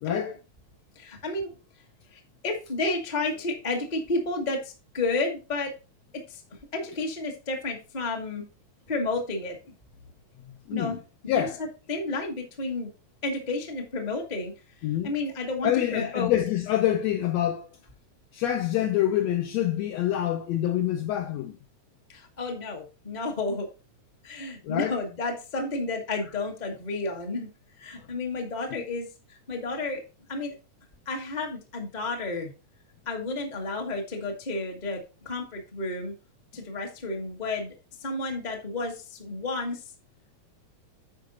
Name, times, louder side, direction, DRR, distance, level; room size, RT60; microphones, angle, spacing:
voice 1, 0.0-0.4 10.7-11.0 11.3-11.6 14.8-15.1 15.6-17.7 18.3-21.6 24.6-25.0 28.0-28.1 28.7-28.8, left 12 dB, 75° left, 1.7 m, -26 dB
voice 2, 0.9-1.5 2.1-5.7 6.3-6.4 6.7-8.4 8.9-9.6 10.7-11.0 11.2-11.5 11.9-12.9 13.2-14.5 15.0-16.3 22.1-23.7 24.2-27.5 27.8-30.0 30.3-30.5 31.0-32.5 33.0-36.1 36.5-37.7 38.0-39.8, left 2 dB, 30° left, 0.8 m, -31 dB
9.3 x 5.3 x 4.1 m
omnidirectional pair, 3.4 m